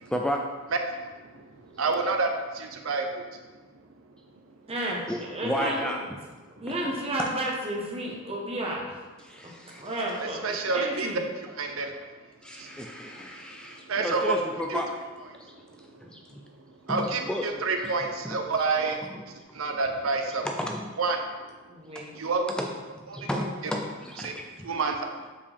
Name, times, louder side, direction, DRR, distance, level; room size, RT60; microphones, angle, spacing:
voice 1, 0.1-0.4 5.1-5.2 5.4-6.0 9.2-9.8 12.4-14.9 16.0-16.2 16.9-17.4 17.8-17.9 18.2-18.4 19.1-19.2 20.4-20.9 22.5-24.3, equal, 5° left, 1 dB, 0.4 m, -32 dB
voice 2, 1.8-3.2 10.4-11.1 11.6-12.0 12.6-12.7 13.9-14.3 14.7-14.8 16.9-19.0 19.5-20.5 21.0-21.2 22.2-22.5 23.2-23.7 24.2-24.3 24.6-25.0, right 4 dB, 80° right, 4 dB, 0.7 m, -28 dB
voice 3, 4.7-5.9 6.6-9.0 9.4-10.4 10.7-11.2 21.7-22.1, right 1 dB, 30° right, -2 dB, 1.2 m, -32 dB
7.3 x 4.7 x 3.5 m, 1.3 s
head